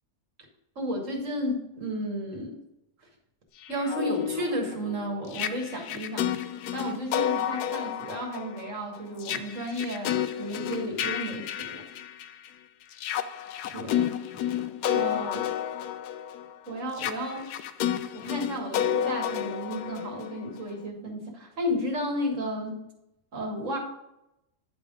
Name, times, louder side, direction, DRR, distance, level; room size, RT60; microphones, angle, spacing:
voice 1, 0.8-2.6 3.7-6.3 6.7-11.8 13.7-14.0 14.9-15.5 16.7-17.5 18.1-22.8 23.3-23.8, equal, 55° right, 1 dB, 1.8 m, -33 dB
sound 1, 3.6-12.5 12.9-20.7, left 10 dB, 80° left, 1.1 m, -31 dB
10.0 x 3.6 x 5.0 m, 0.86 s
omnidirectional pair, 1.7 m